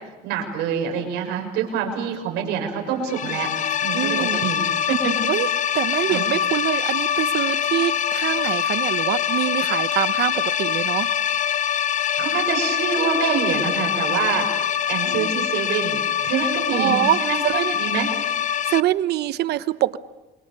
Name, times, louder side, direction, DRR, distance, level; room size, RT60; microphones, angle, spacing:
voice 1, 0.2-3.5 3.8-5.2 6.1-6.2 12.2-14.5 14.9-18.1, right 7 dB, 90° right, 3 dB, 6.4 m, -26 dB
sound 1, 3.1-18.8, left 9 dB, 50° left, 0.8 m, -24 dB
voice 2, 3.9-4.4 5.3-5.5 5.7-11.1 15.1-15.5 16.7-17.7 18.6-20.0, right 14 dB, 75° right, 14 dB, 1.1 m, -24 dB
28.0 x 25.5 x 6.9 m, 1.1 s
cardioid pair, 110°, 17 cm